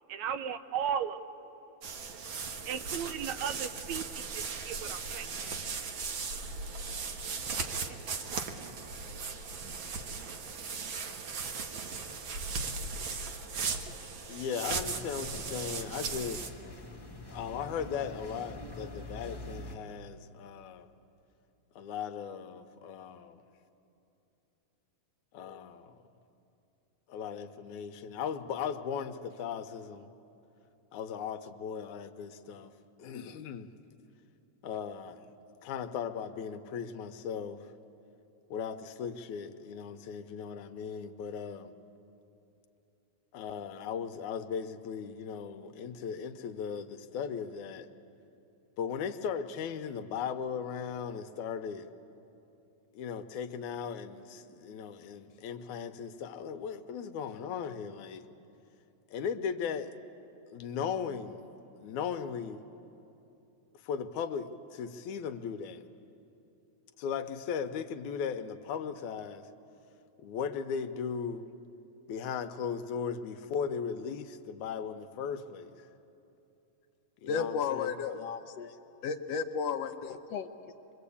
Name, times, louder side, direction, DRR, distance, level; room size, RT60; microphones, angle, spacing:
voice 1, 0.1-1.2 2.6-5.3 7.9-8.0, right 8 dB, 75° right, 11 dB, 2.0 m, -35 dB
sound 1, 1.8-16.5, right 5 dB, 55° right, 1.6 m, -37 dB
voice 2, 14.3-16.5 17.3-20.9 21.8-23.4 25.3-25.9 27.1-30.1 30.9-32.7 33.0-33.7 34.6-35.3 35.6-37.7 38.5-41.7 43.3-47.9 48.8-51.9 52.9-58.2 59.1-59.9 60.5-61.4 61.8-62.6 63.8-65.8 67.0-69.5 70.2-71.5 72.1-75.9 77.2-78.0, left 7 dB, 90° left, 8 dB, 2.3 m, -37 dB
sound 2, 14.7-19.7, left 1 dB, 10° left, 1.1 m, -45 dB
voice 3, 77.3-78.7 79.0-80.5, left 6 dB, 70° left, 7 dB, 1.7 m, -33 dB
25.0 x 22.5 x 8.5 m, 2.9 s
omnidirectional pair, 3.3 m